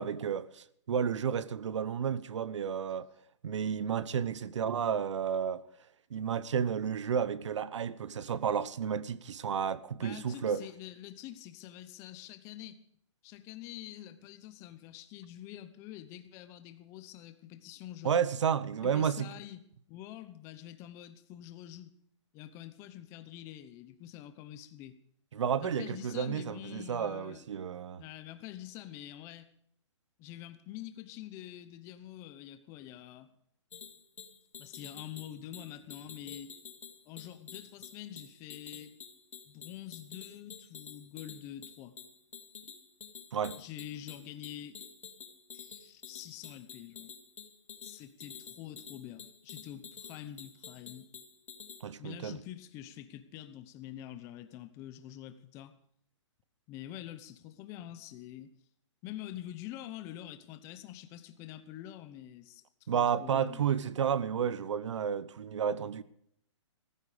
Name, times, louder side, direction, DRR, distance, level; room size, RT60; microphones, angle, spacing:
voice 1, 0.0-3.1 3.4-5.6 6.1-10.6 18.0-19.3 25.3-28.0 43.3-43.6 51.8-52.4 62.9-66.0, right 7 dB, 70° right, 1.0 m, -31 dB
voice 2, 10.0-12.8 13.2-18.2 18.8-21.9 22.3-25.0 25.6-27.4 28.0-29.5 30.2-33.3 34.6-36.5 37.1-38.9 39.5-42.0 42.6-42.7 43.6-44.8 45.5-47.1 47.8-51.1 52.0-55.7 56.7-58.5 59.0-63.6, left 12 dB, 15° left, 0.8 m, -46 dB
sound 1, 33.7-51.8, left 7 dB, 80° left, 2.6 m, -49 dB
16.0 x 14.5 x 5.0 m
hypercardioid pair, 170°, 16 cm